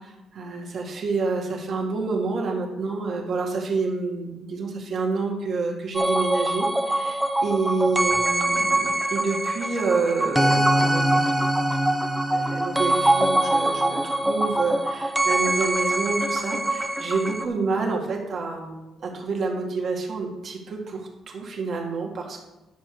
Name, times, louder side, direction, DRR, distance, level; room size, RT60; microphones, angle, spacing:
voice 1, 0.0-11.6 12.2-22.5, right 4 dB, 40° right, 1 dB, 2.0 m, -28 dB
sound 1, 5.9-17.5, right 1 dB, 5° right, 0.6 m, -23 dB
10.5 x 6.6 x 4.9 m, 1.0 s
cardioid pair, 160°, 0 cm